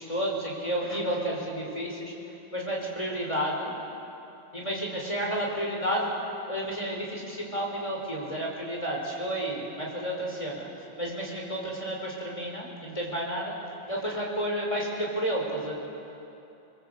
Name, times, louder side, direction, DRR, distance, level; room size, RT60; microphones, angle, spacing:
voice 1, 0.0-2.1 2.5-3.7 4.5-6.1 6.5-10.7 11.0-13.5 13.9-15.7, equal, 15° left, -1 dB, 5.1 m, -31 dB
27.0 x 21.0 x 8.2 m, 2.9 s
omnidirectional pair, 2.0 m